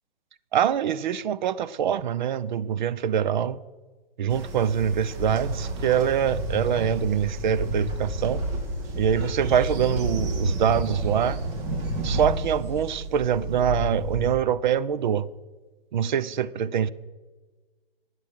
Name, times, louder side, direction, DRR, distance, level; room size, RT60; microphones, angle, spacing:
voice 1, 0.5-3.6 4.2-8.4 9.0-11.4 12.0-15.3 15.9-16.9, right 8 dB, 50° right, 0.7 m, -24 dB
Train, 4.3-14.3, right 1 dB, 35° right, 2.7 m, -30 dB
18.5 x 7.6 x 6.3 m
hypercardioid pair, 130°, 30 cm